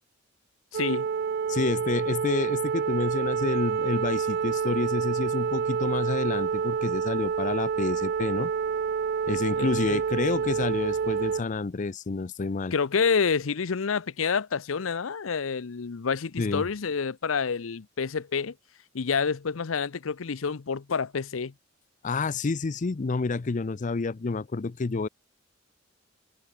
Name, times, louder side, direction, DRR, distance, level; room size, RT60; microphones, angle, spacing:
voice 1, 0.7-1.1 9.6-10.0 10.3-10.4 12.7-18.5 18.9-21.5, left 5 dB, 90° left, 0.7 m, -28 dB
sound 1, 0.7-11.4, right 6 dB, 50° right, 0.4 m, -28 dB
voice 2, 1.5-8.5 9.3-12.7 16.4-16.6 22.0-25.1, left 3 dB, 40° left, 0.5 m, -29 dB
head